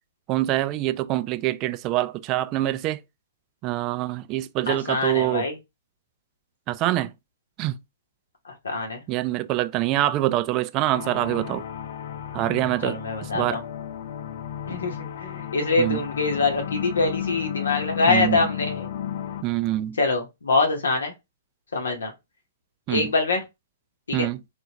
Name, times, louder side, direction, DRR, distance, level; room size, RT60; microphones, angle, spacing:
voice 1, 0.3-3.0 3.6-5.5 6.7-7.1 7.6-7.7 9.1-11.6 12.3-13.0 13.2-13.6 15.8-16.1 18.1-18.4 19.4-20.0 22.9-23.1 24.1-24.4, right 15 dB, 35° right, 0.3 m, -25 dB
voice 2, 4.7-5.6 8.5-9.0 12.8-13.6 14.7-18.9 20.0-21.1 21.7-22.1 22.9-23.4 24.1-24.3, left 3 dB, 75° left, 0.8 m, -24 dB
sound 1, 10.9-19.4, left 9 dB, 55° left, 0.4 m, -33 dB
3.3 x 2.4 x 2.8 m
figure-of-eight pair, 115°, 0 cm